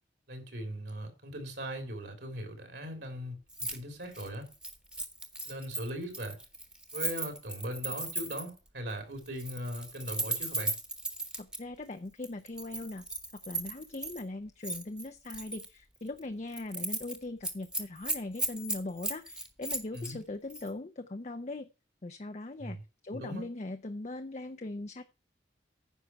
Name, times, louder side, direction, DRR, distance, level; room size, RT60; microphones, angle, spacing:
voice 1, 0.3-4.5 5.4-6.4 6.9-10.7 19.9-20.2 22.6-22.8 23.1-23.4, equal, 65° right, 3.3 m, -39 dB
Keys jangling, 3.5-3.8 4.1-8.6 9.3-11.6 12.2-14.2 14.6-15.7 16.1-16.2 16.5-17.2 17.4-20.1 20.5-20.7, right 2 dB, 5° right, 1.1 m, -36 dB
voice 2, 11.4-13.0 13.4-21.7 22.0-25.0, left 2 dB, 35° left, 0.5 m, -40 dB
9.9 x 5.9 x 5.8 m
head